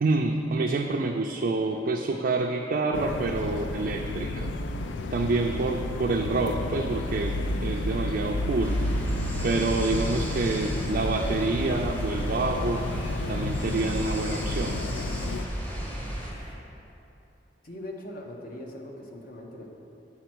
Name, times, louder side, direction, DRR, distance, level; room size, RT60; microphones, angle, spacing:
voice 1, 0.0-4.5 5.1-7.4 7.6-8.8 9.4-12.8 13.3-14.8, right 3 dB, 50° right, 1 dB, 0.4 m, -27 dB
sound 1, 2.9-15.5, left 2 dB, 85° left, 0.4 m, -31 dB
sound 2, 6.9-16.5, equal, 30° left, 1.1 m, -41 dB
sound 3, 8.6-16.3, equal, 10° left, 0.8 m, -36 dB
voice 2, 17.6-19.7, left 1 dB, 50° left, 1 dB, 0.9 m, -40 dB
7.8 x 4.3 x 6.1 m, 2.9 s
head